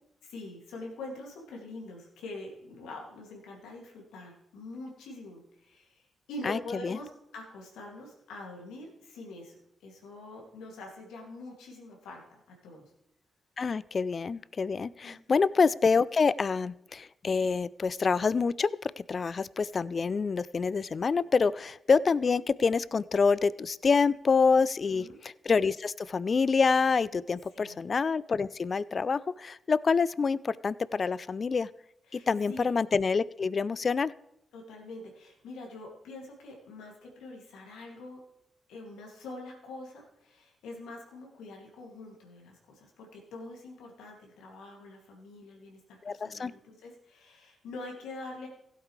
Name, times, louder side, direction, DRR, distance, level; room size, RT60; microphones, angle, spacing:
voice 1, 0.2-9.6 9.8-12.8 15.0-15.4 24.5-25.2 27.5-27.8 32.1-32.7 34.5-38.2 38.7-48.5, left 2 dB, 80° left, 0 dB, 2.4 m, -45 dB
voice 2, 6.4-7.0 13.6-31.7 32.1-34.1 46.0-46.5, left 5 dB, 50° left, 20 dB, 0.3 m, -27 dB
16.0 x 8.3 x 3.2 m, 0.81 s
hypercardioid pair, 40°, 0 cm